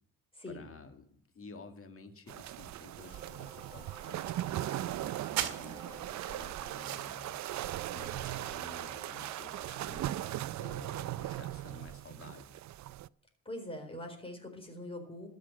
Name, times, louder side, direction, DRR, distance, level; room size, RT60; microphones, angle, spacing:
voice 1, 0.5-7.4 7.9-10.1 10.6-12.6, left 4 dB, 35° left, 7 dB, 2.2 m, -52 dB
sound 1, 2.3-13.1, right 14 dB, 50° right, 0.4 m, -39 dB
sound 2, 3.0-8.1, right 10 dB, 65° right, 1.7 m, -43 dB
sound 3, 3.1-10.4, right 3 dB, 15° right, 2.6 m, -53 dB
voice 2, 13.4-15.3, left 1 dB, 15° left, 3 dB, 4.3 m, -43 dB
13.0 x 6.4 x 9.9 m, 0.66 s
supercardioid pair, 75°, 37 cm